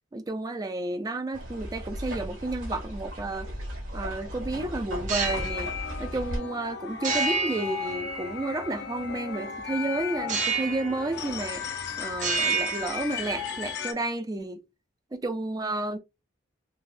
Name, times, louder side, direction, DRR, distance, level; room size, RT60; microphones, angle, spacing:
voice 1, 0.1-3.5 3.9-5.7 6.0-11.6 12.0-14.6 15.1-16.0, right 2 dB, 20° right, 0.3 m, -31 dB
sound 1, 1.3-6.4, equal, 85° right, 1.7 m, -36 dB
sound 2, 5.1-5.5 7.0-8.5 10.3-11.0 11.3-11.8 12.1-13.5, right 4 dB, 40° right, 0.7 m, -29 dB
sound 3, 5.2-13.9, left 7 dB, 55° left, 0.6 m, -36 dB
3.9 x 2.1 x 2.5 m
head